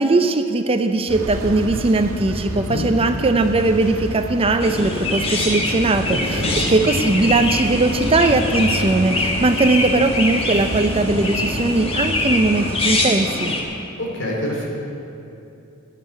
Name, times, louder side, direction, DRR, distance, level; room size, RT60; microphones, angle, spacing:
voice 1, 0.0-13.5, right 2 dB, 25° right, 8 dB, 0.5 m, -19 dB
sound 1, 1.1-12.9, equal, 80° right, 1.4 m, -30 dB
voice 2, 2.5-2.8 6.1-6.5 14.0-14.7, left 1 dB, 60° left, -2 dB, 3.4 m, -27 dB
Chirp tweet, 4.6-13.6, left 2 dB, 25° left, 1.6 m, -24 dB
13.0 x 7.6 x 9.8 m, 2.8 s
head